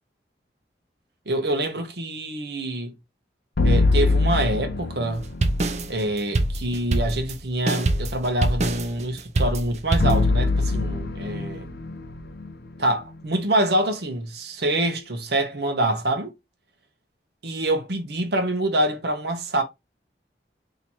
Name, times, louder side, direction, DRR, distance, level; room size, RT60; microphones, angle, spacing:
voice 1, 1.3-2.9 3.6-5.2 5.9-11.7 12.8-16.3 17.4-19.6, right 1 dB, 70° right, 1.0 m, -25 dB
sound 1, 3.6-5.7 10.0-13.2, left 3 dB, 60° left, 0.6 m, -23 dB
sound 2, 5.1-10.2, right 2 dB, 40° right, 0.5 m, -24 dB
3.0 x 2.8 x 4.3 m
head